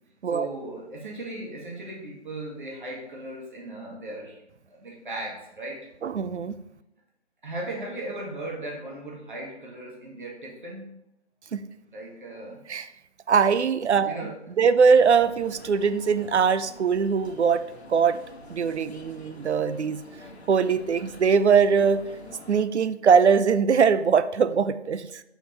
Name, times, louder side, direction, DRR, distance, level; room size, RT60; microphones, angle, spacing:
voice 1, 0.3-4.4 4.7-5.9 7.4-11.0 11.9-12.6 14.0-14.4, right 1 dB, 45° right, -2 dB, 1.8 m, -37 dB
voice 2, 6.0-6.5 11.5-11.6 12.7-12.9 13.3-14.3 14.6-17.6 17.9-18.2 18.5-20.0 20.5-22.0 22.5-25.2, right 6 dB, 75° right, 13 dB, 0.6 m, -21 dB
sound 1, 14.9-22.6, left 2 dB, 65° left, 1.1 m, -47 dB
5.7 x 4.5 x 4.4 m, 0.85 s
figure-of-eight pair, 175°, 34 cm